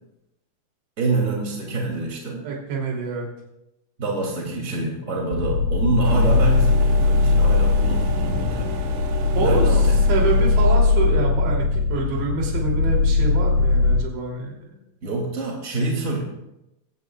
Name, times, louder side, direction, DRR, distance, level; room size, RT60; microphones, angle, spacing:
voice 1, 1.0-2.4 4.0-8.7 9.3-9.9 10.2-10.3 15.0-16.2, right 3 dB, 25° right, -2 dB, 1.7 m, -26 dB
voice 2, 2.4-3.3 9.4-14.7, right 4 dB, 60° right, -1 dB, 4.9 m, -27 dB
sound 1, 5.3-14.0, left 3 dB, 75° left, 5.4 m, -19 dB
sound 2, 6.0-11.2, right 5 dB, 80° right, 4.3 m, -34 dB
22.0 x 16.5 x 2.4 m, 0.89 s
omnidirectional pair, 5.8 m